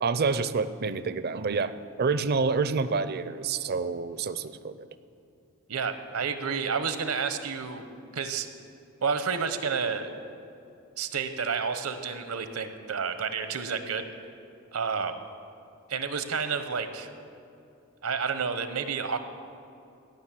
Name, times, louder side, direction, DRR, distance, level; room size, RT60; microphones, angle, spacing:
voice 1, 0.0-4.8, right 4 dB, 45° right, 13 dB, 0.5 m, -28 dB
voice 2, 5.7-7.9 8.1-8.5 9.0-10.1 11.0-14.1 14.7-15.2 15.9-17.1 18.0-19.2, right 5 dB, 80° right, 9 dB, 0.9 m, -30 dB
17.5 x 6.2 x 7.6 m, 2.7 s
head